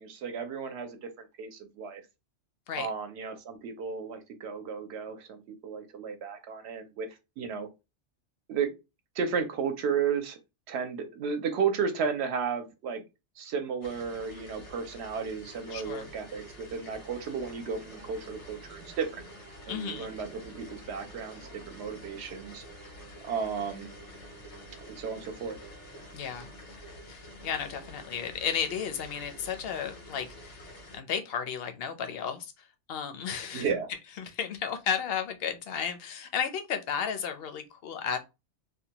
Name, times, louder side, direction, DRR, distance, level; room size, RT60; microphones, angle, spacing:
voice 1, 0.0-2.0 2.8-7.7 8.5-8.7 9.2-10.4 10.7-13.0 13.4-19.2 19.7-22.6 23.2-23.9 24.9-25.6 33.5-33.9, right 6 dB, 70° right, 0.8 m, -33 dB
sound 1, 13.8-31.0, equal, 85° left, 1.1 m, -48 dB
voice 2, 15.7-16.1 19.7-20.1 26.1-26.5 27.1-30.7 30.9-32.5 32.9-33.7 34.2-38.2, left 7 dB, 65° left, 0.7 m, -33 dB
sound 2, 17.1-27.3, right 3 dB, 35° right, 0.6 m, -55 dB
2.6 x 2.2 x 2.8 m
omnidirectional pair, 1.2 m